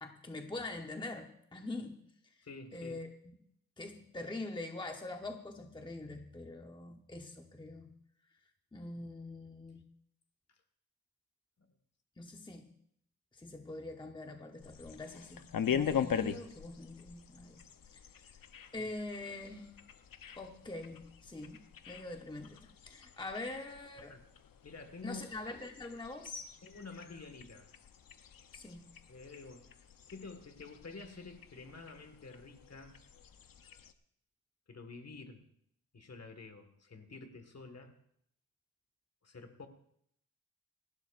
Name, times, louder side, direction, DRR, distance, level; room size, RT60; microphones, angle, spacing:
voice 1, 0.0-2.0 2.7-3.1 3.8-7.9 8.7-9.8 12.2-12.7 13.3-17.6 18.7-19.8 20.4-21.6 21.9-24.1 25.0-26.5 28.5-28.9, left 2 dB, 15° left, 3 dB, 0.9 m, -44 dB
voice 2, 2.4-3.0 11.6-11.7 18.8-18.9 24.0-24.2 24.6-25.2 26.6-27.7 29.1-29.7 30.1-32.9 34.7-35.4 35.9-37.9 39.2-39.7, left 3 dB, 50° left, 7 dB, 1.7 m, -49 dB
sound 1, 14.6-33.9, left 8 dB, 90° left, 0.8 m, -42 dB
28.5 x 12.0 x 2.5 m, 0.69 s
wide cardioid pair, 150°, 33 cm